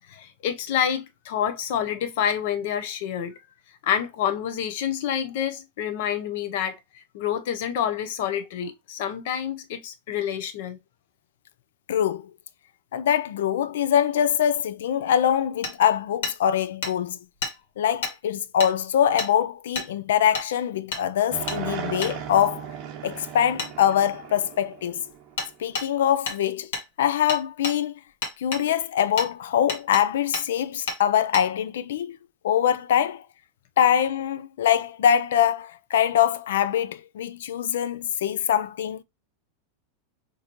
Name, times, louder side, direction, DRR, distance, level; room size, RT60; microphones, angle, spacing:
voice 1, 0.1-3.4 3.8-10.8, left 9 dB, 50° left, 0.7 m, -28 dB
voice 2, 11.9-12.3 12.9-17.2 17.8-22.7 23.0-25.0 25.6-26.7 27.0-27.9 28.4-32.2 32.4-33.2 33.8-39.0, left 9 dB, 85° left, 0.4 m, -23 dB
Hammer, 15.6-15.7 16.2-16.4 16.8-16.9 17.4-17.5 18.0-18.1 18.6-18.7 19.2-19.3 19.7-19.9 20.3-20.5 20.9-21.0 21.5-21.6 22.0-22.1 23.6-23.7 25.4-25.5 25.7-25.9 26.3-26.4 26.7-26.9 27.3-27.8 28.2-28.6 29.2-29.3 29.7-30.0 30.3-30.5 30.9-31.0 31.3-31.5, left 4 dB, 70° left, 1.6 m, -30 dB
sound 1, 21.3-25.7, right 8 dB, 25° right, 0.7 m, -36 dB
6.4 x 2.7 x 3.0 m
supercardioid pair, 180°, 0 cm